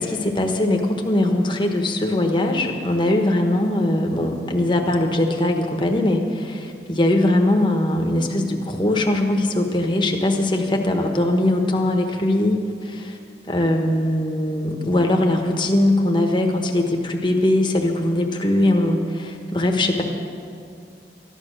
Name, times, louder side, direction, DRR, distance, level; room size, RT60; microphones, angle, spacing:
voice 1, 0.0-13.2 13.5-20.0, left 1 dB, 25° left, 3 dB, 1.2 m, -21 dB
14.0 x 11.0 x 6.4 m, 2.4 s
head